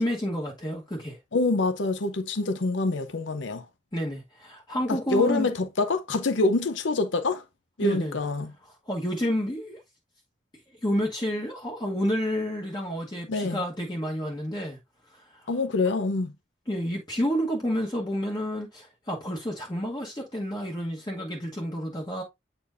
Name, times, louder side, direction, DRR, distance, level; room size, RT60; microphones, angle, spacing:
voice 1, 0.0-1.2 3.9-5.5 7.8-8.2 8.7-9.8 10.8-14.8 15.1-15.5 16.7-22.2, equal, 25° left, 1.2 m, -30 dB
voice 2, 1.3-3.6 4.9-7.4 7.8-8.5 13.3-13.6 15.5-16.3, left 3 dB, 80° left, 0.7 m, -26 dB
8.5 x 4.4 x 2.6 m
head